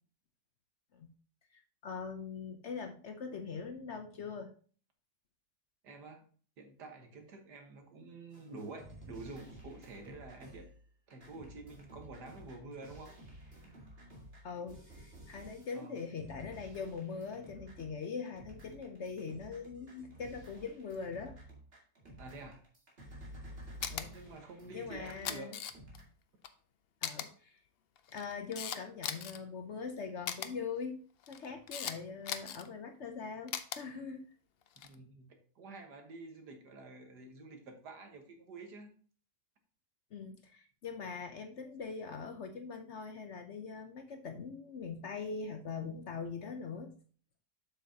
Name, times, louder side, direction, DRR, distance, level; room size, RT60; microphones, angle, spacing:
voice 1, 1.5-4.5 14.4-21.4 23.9-24.1 24.7-25.6 27.0-27.6 28.1-31.0 31.3-34.2 40.1-46.9, left 5 dB, 60° left, 5 dB, 0.8 m, -42 dB
voice 2, 5.8-6.2 6.6-10.7 11.1-13.1 15.7-16.0 22.2-22.6 24.1-25.6 34.8-38.9, right 3 dB, 85° right, 4 dB, 1.9 m, -49 dB
sound 1, 8.3-26.0, equal, 35° right, 2.2 m, -53 dB
Camera, 23.8-24.0 25.0-26.0 26.4-26.5 27.0-27.3 28.0-29.4 30.2-30.5 31.2-31.9 32.2-32.7 33.5-33.8 34.7-34.9, left 8 dB, 90° left, 0.5 m, -38 dB
7.6 x 6.8 x 2.8 m, 0.43 s
omnidirectional pair, 1.7 m